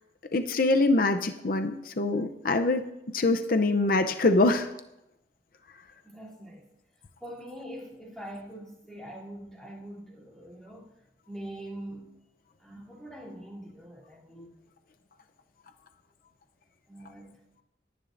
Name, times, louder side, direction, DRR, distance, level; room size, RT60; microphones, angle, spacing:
voice 1, 0.3-2.9 3.1-4.7, left 2 dB, 50° left, 0.6 m, -24 dB
voice 2, 6.0-6.7 7.2-10.9 11.3-12.1 12.6-14.5 16.9-17.4, right 1 dB, 5° left, 2.9 m, -43 dB
18.5 x 10.0 x 2.6 m
head